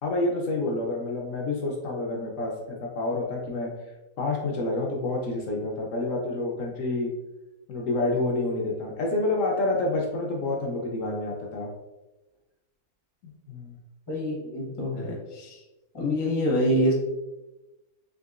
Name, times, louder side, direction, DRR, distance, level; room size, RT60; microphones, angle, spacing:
voice 1, 0.0-3.7 4.2-7.1 7.7-11.7 13.2-13.8, left 2 dB, 70° left, -1 dB, 0.8 m, -28 dB
voice 2, 14.1-15.6 15.9-16.9, equal, 25° left, -3 dB, 0.5 m, -26 dB
3.7 x 2.9 x 2.4 m, 1.1 s
omnidirectional pair, 1.6 m